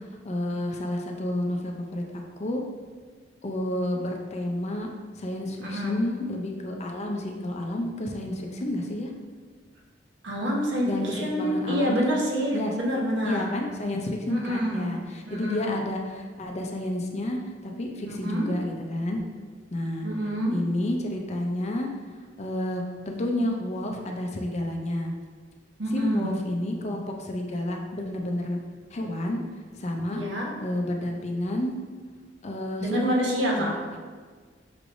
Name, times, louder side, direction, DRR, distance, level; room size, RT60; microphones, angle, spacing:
voice 1, 0.2-2.6 3.4-4.9 5.2-9.1 10.8-12.1 12.5-12.8 13.2-19.2 19.7-20.1 20.5-21.9 22.4-25.1 25.9-28.6 28.9-29.4 29.7-30.2 30.6-31.7 32.4-33.7, left 1 dB, 40° left, 2 dB, 0.5 m, -30 dB
voice 2, 5.6-6.0 10.2-13.5 14.3-15.0 15.3-15.8 18.1-18.5 20.0-20.5 25.8-26.4 30.1-30.5 32.8-33.7, equal, 80° right, -2 dB, 0.9 m, -27 dB
5.9 x 3.2 x 2.6 m, 1.5 s
head